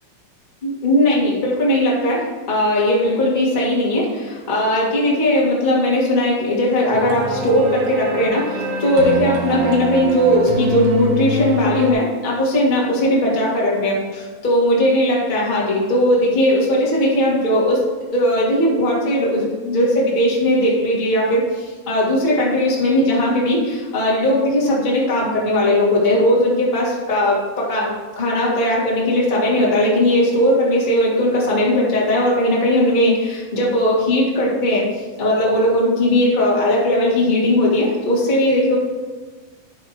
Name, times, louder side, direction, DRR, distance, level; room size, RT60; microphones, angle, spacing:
voice 1, 0.6-17.8 18.1-27.9 28.1-38.8, left 1 dB, 20° left, -5 dB, 1.2 m, -18 dB
sound 1, 6.9-11.9, right 2 dB, 90° right, 1.2 m, -25 dB
9.7 x 4.7 x 4.9 m, 1.4 s
omnidirectional pair, 3.8 m